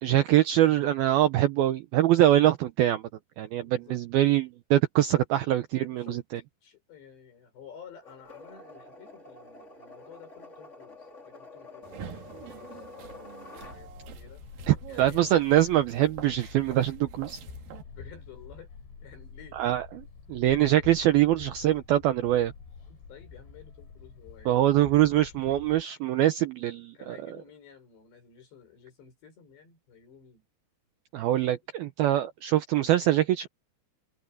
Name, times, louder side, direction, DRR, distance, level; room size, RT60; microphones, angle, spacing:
voice 1, 0.0-3.0 3.4-6.2 14.7-17.4 19.6-22.5 24.5-27.4 31.1-33.5, right 13 dB, 75° right, 2.2 m, -24 dB
voice 2, 3.6-4.0 5.1-5.2 5.9-6.2 6.6-14.4 14.9-15.4 17.8-18.7 19.0-19.6 23.1-24.8 26.7-30.4 31.3-31.6, left 7 dB, 65° left, 8.1 m, -52 dB
sound 1, 8.0-13.8, left 3 dB, 20° left, 2.5 m, -48 dB
sound 2, 11.8-17.8, right 8 dB, 60° right, 2.9 m, -46 dB
sound 3, 13.6-25.8, left 5 dB, 85° left, 8.4 m, -47 dB
open air
omnidirectional pair, 5.3 m